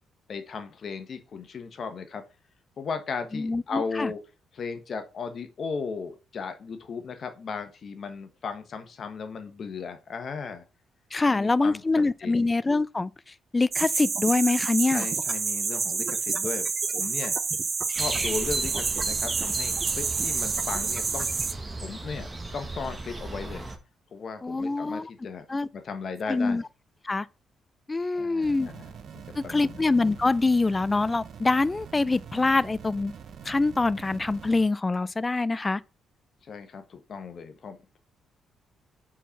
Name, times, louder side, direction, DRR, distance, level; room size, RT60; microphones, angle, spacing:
voice 1, 0.3-2.2 2.8-4.2 4.5-10.6 11.3-12.5 14.9-17.4 17.9-21.3 21.8-23.7 24.1-25.5 25.7-26.6 28.1-29.8 36.4-38.0, left 5 dB, 50° left, 1.1 m, -36 dB
voice 2, 3.3-4.1 11.1-15.1 24.4-25.1 25.5-25.7 26.3-26.6 27.0-27.3 27.9-28.7 29.4-33.1 33.4-35.8, left 3 dB, 20° left, 0.3 m, -25 dB
sound 1, 13.7-21.5, right 5 dB, 40° right, 0.6 m, -28 dB
sound 2, 17.9-23.8, right 2 dB, 20° right, 1.2 m, -35 dB
sound 3, 28.4-34.7, right 7 dB, 60° right, 0.9 m, -44 dB
4.6 x 4.3 x 5.6 m
cardioid pair, 90°, 0 cm